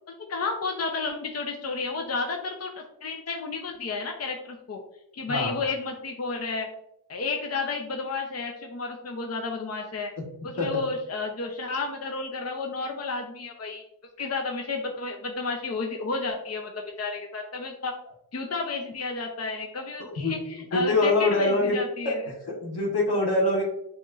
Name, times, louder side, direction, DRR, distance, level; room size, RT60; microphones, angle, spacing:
voice 1, 0.1-4.8 5.1-6.7 7.1-10.1 10.4-13.8 14.2-17.9 18.3-22.2, left 4 dB, 40° left, 3 dB, 0.6 m, -31 dB
voice 2, 5.3-5.6 10.6-10.8 20.0-20.3 20.7-21.8 22.0-22.1 22.5-23.6, left 2 dB, 70° left, -1 dB, 1.4 m, -24 dB
7.0 x 3.1 x 2.4 m, 0.80 s
wide cardioid pair, 80°, 40 cm